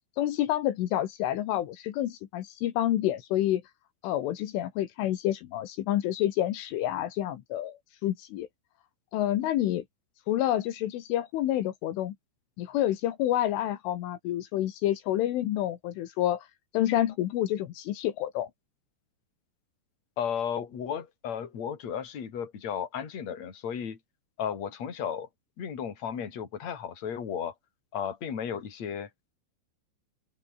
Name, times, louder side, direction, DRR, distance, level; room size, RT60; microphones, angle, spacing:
voice 1, 0.2-3.6 4.0-8.5 9.1-9.8 10.3-12.2 12.6-16.5 16.7-18.5, left 13 dB, 80° left, 4.1 m, -28 dB
voice 2, 20.2-24.0 24.4-25.3 25.6-27.5 27.9-29.1, left 8 dB, 35° left, 4.2 m, -34 dB
open air
omnidirectional pair, 5.7 m